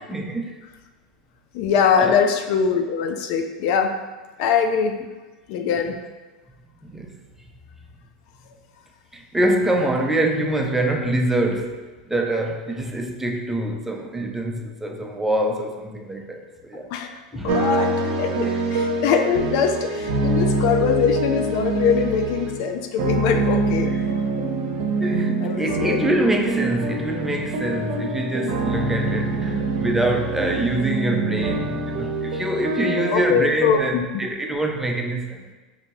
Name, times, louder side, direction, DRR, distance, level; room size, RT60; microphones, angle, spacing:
voice 1, 0.1-0.6 2.0-2.2 6.8-7.1 9.1-16.9 17.3-17.6 25.0-35.4, right 1 dB, 10° right, 2 dB, 0.5 m, -25 dB
voice 2, 1.5-3.9 4.4-5.0 5.5-6.0 16.9-17.1 17.4-23.9 25.4-26.1 33.1-34.1, left 6 dB, 60° left, 6 dB, 0.4 m, -22 dB
sound 1, 17.5-33.8, right 2 dB, 60° right, 0.7 m, -25 dB
5.0 x 2.7 x 2.9 m, 1.2 s
hypercardioid pair, 95°, 4 cm